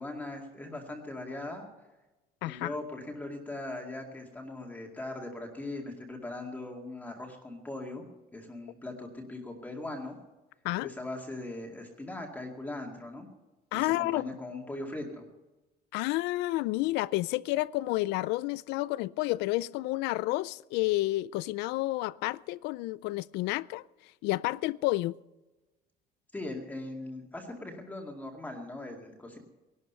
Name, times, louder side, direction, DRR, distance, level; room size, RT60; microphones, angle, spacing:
voice 1, 0.0-1.7 2.4-8.1 8.3-10.2 10.8-13.3 13.7-15.2 26.3-29.4, left 2 dB, 10° left, 2.2 m, -40 dB
voice 2, 2.4-2.7 10.6-10.9 13.7-14.2 15.9-23.8 24.2-25.1, left 18 dB, 85° left, 0.5 m, -30 dB
19.0 x 12.0 x 5.6 m
cardioid pair, 160°, 17 cm